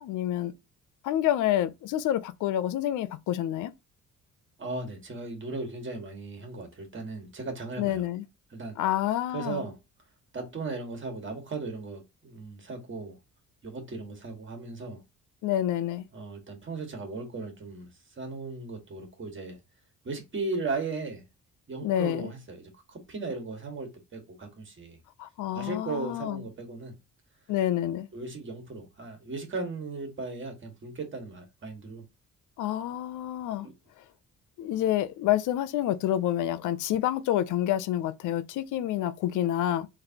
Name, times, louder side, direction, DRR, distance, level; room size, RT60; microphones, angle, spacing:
voice 1, 0.0-0.5 1.0-3.7 7.8-8.2 8.8-9.6 15.4-16.1 21.8-22.3 25.2-26.4 27.5-28.1 32.6-33.7 34.6-39.9, left 12 dB, 80° left, 0.5 m, -28 dB
voice 2, 4.6-8.0 8.5-8.8 9.3-9.8 10.3-13.2 13.6-15.0 16.1-19.6 20.0-21.2 21.7-25.0 25.5-26.9 28.1-32.0 33.6-33.7, right 3 dB, 40° right, 1.7 m, -37 dB
3.9 x 3.3 x 2.8 m
cardioid pair, 90°, 30 cm